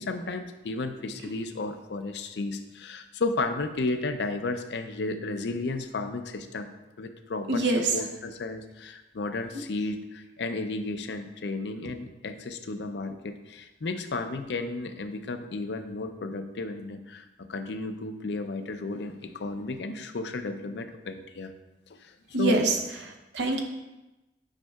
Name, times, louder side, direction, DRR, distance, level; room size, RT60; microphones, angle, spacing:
voice 1, 0.0-6.7 7.0-21.5 21.9-22.6, left 3 dB, 75° left, 8 dB, 0.5 m, -33 dB
voice 2, 7.5-7.9 22.3-22.8 23.0-23.6, right 2 dB, 85° right, 3 dB, 0.7 m, -25 dB
9.0 x 5.3 x 2.3 m, 1.0 s
head